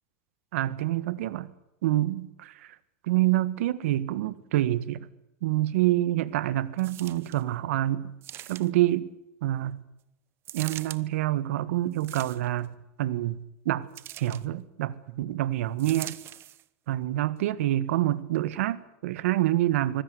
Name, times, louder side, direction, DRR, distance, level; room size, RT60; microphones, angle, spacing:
voice 1, 0.5-1.5 1.8-2.7 3.0-5.1 5.4-8.1 8.5-9.1 9.4-9.8 10.5-13.9 14.2-16.2 16.9-20.0, right 15 dB, 75° right, 1.7 m, -27 dB
sound 1, 6.8-7.4 8.2-8.9 10.4-11.0 11.9-12.7 13.9-14.5 15.8-16.6 17.4-17.5, right 13 dB, 35° right, 1.0 m, -42 dB
24.5 x 16.5 x 9.6 m
supercardioid pair, 145°, 7 cm